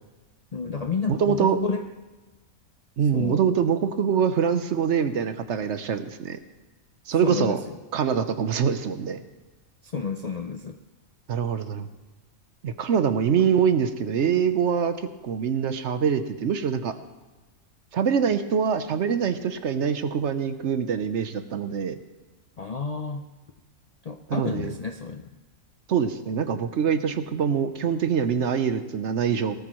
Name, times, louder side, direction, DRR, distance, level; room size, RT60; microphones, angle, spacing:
voice 1, 0.5-1.8 3.1-3.4 7.2-7.8 9.8-10.8 18.3-18.4 22.6-23.2 24.0-25.3, left 5 dB, 50° left, 6 dB, 0.4 m, -30 dB
voice 2, 1.1-1.6 3.0-6.4 7.1-7.6 7.9-9.2 11.3-11.9 12.6-15.0 15.2-16.9 17.9-22.0 24.3-24.7 25.9-29.6, right 7 dB, 65° right, 10 dB, 1.0 m, -24 dB
18.0 x 13.0 x 3.0 m, 1.2 s
omnidirectional pair, 1.4 m